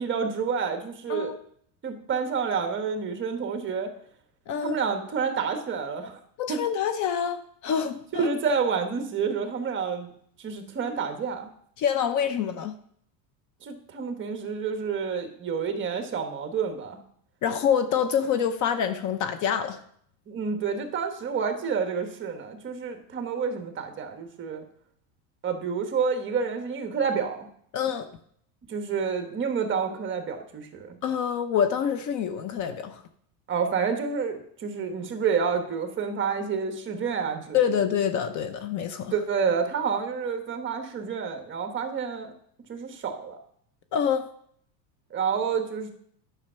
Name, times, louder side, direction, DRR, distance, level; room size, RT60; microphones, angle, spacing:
voice 1, 0.0-1.3 1.8-3.9 4.6-6.2 6.5-6.6 8.1-10.1 10.4-11.5 13.6-17.0 20.3-24.6 25.4-27.5 28.7-31.0 33.5-37.7 39.1-42.3 42.7-43.4 45.1-45.9, right 6 dB, 25° right, 6 dB, 1.3 m, -29 dB
voice 2, 4.5-4.8 6.4-8.3 11.8-12.7 17.4-19.8 27.7-28.1 31.0-33.0 37.5-39.1 43.9-44.3, left 8 dB, 40° left, 9 dB, 0.8 m, -26 dB
10.5 x 6.5 x 5.6 m, 0.64 s
supercardioid pair, 145°, 46 cm